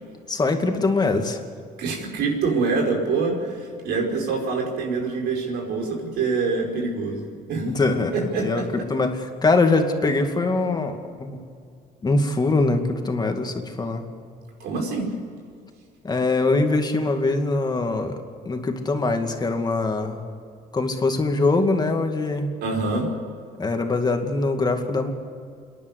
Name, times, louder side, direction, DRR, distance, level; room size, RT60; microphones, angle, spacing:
voice 1, 0.3-1.4 7.7-11.4 12.0-14.1 16.0-18.2 18.5-20.2 20.7-22.5 23.6-25.1, left 3 dB, 25° left, 5 dB, 2.3 m, -23 dB
voice 2, 1.8-8.6 14.6-15.1 22.6-23.1, right 4 dB, 75° right, 1 dB, 5.0 m, -25 dB
27.5 x 11.0 x 9.6 m, 2.2 s
cardioid pair, 110°, 17 cm